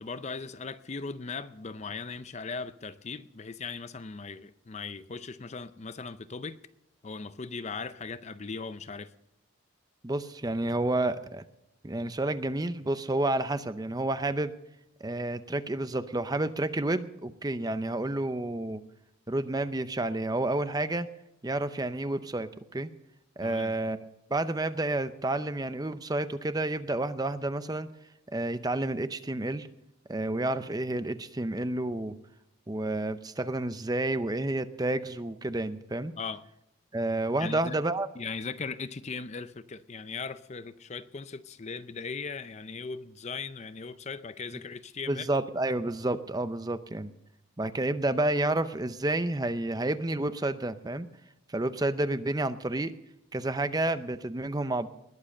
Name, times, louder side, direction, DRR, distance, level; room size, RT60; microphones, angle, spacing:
voice 1, 0.0-6.6 7.0-9.1 23.4-23.7 36.2-36.4 37.4-37.8 38.2-45.3, left 4 dB, 30° left, 13 dB, 0.5 m, -38 dB
voice 2, 10.0-11.4 11.8-14.5 15.0-18.8 19.3-21.1 21.4-22.9 23.4-27.9 28.3-29.7 30.1-32.2 32.7-36.1 36.9-38.1 45.1-47.1 47.6-51.1 51.5-52.9 53.3-54.9, right 2 dB, 20° right, 12 dB, 0.6 m, -30 dB
20.5 x 7.5 x 6.6 m, 0.83 s
head